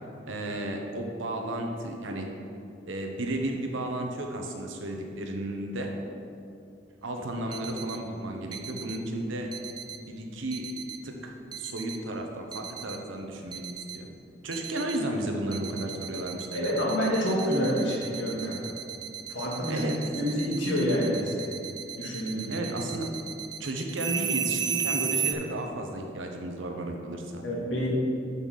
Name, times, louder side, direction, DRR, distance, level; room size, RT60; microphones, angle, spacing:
voice 1, 0.3-2.3 2.9-5.9 7.0-9.5 10.1-10.7 11.0-14.1 14.4-16.7 19.7-20.0 22.5-23.1 23.6-27.4, right 1 dB, 85° right, 2 dB, 0.9 m, -33 dB
sound 1, 7.5-8.0 8.5-9.0 9.5-10.0 10.5-11.0 11.5-12.0 12.5-13.0 13.5-14.0 14.5-15.0 15.5-25.3, right 8 dB, 20° right, 0.4 m, -34 dB
voice 2, 16.5-18.6 19.3-21.4 22.0-22.7 27.4-27.9, equal, 70° left, -4 dB, 1.9 m, -28 dB
6.5 x 5.5 x 5.5 m, 2.6 s
head